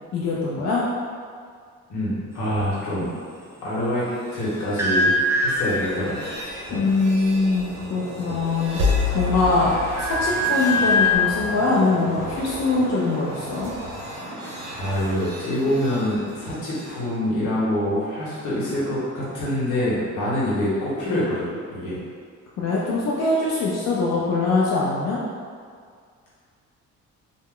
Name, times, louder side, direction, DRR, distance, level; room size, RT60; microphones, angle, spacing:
voice 1, 0.1-0.8 6.7-8.8 9.1-13.7 22.6-25.2, left 3 dB, 60° left, -5 dB, 0.4 m, -22 dB
voice 2, 1.9-3.1 3.6-6.3 6.7-6.8 14.4-22.0, left 1 dB, 80° left, -7 dB, 1.0 m, -26 dB
sound 1, 4.1-17.0, left 2 dB, 55° right, 0.7 m, -31 dB
sound 2, 4.8-6.3 8.2-9.0 9.4-11.2, left 1 dB, 10° right, 0.3 m, -23 dB
2.1 x 2.0 x 3.6 m, 2.1 s
cardioid pair, 90°, 30 cm